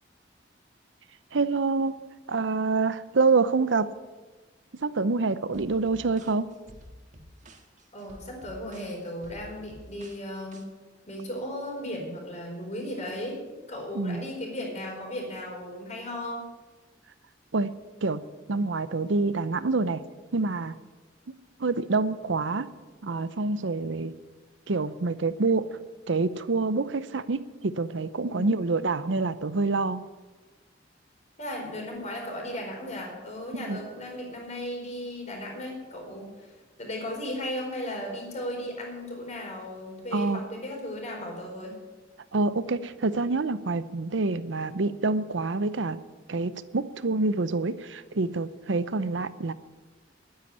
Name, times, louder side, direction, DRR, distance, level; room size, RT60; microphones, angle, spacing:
voice 1, 1.3-2.0 2.3-3.9 4.8-6.5 13.9-14.2 17.5-17.7 18.0-18.2 18.5-20.0 20.3-20.8 21.3-22.7 23.0-24.1 24.7-25.7 26.1-30.0 33.6-33.8 40.1-40.4 42.3-46.0 46.3-49.5, right 3 dB, 85° right, 14 dB, 0.7 m, -27 dB
sound 1, 5.5-10.6, equal, 40° right, 1.7 m, -50 dB
voice 2, 7.9-10.7 11.1-13.4 13.7-16.4 28.3-28.6 31.4-41.8, left 1 dB, 40° left, 0 dB, 4.5 m, -36 dB
11.5 x 9.8 x 9.7 m, 1.3 s
head